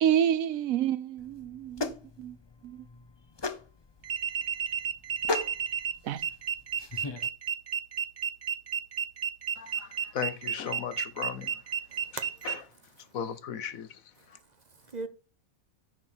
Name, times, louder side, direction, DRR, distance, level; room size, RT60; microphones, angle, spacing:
voice 1, 0.0-2.4 2.6-2.8 6.0-6.2, right 10 dB, 75° right, 1.1 m, -28 dB
sound 1, 1.2-7.3, left 3 dB, 25° left, 0.6 m, -38 dB
sound 2, 4.0-12.6, right 7 dB, 55° right, 1.2 m, -32 dB
voice 2, 9.6-11.6 12.4-12.6 13.0-14.4, left 8 dB, 75° left, 1.4 m, -37 dB
voice 3, 11.9-12.5 13.0-13.1 14.2-15.1, right 3 dB, 35° right, 0.8 m, -42 dB
10.0 x 6.4 x 4.5 m
omnidirectional pair, 1.5 m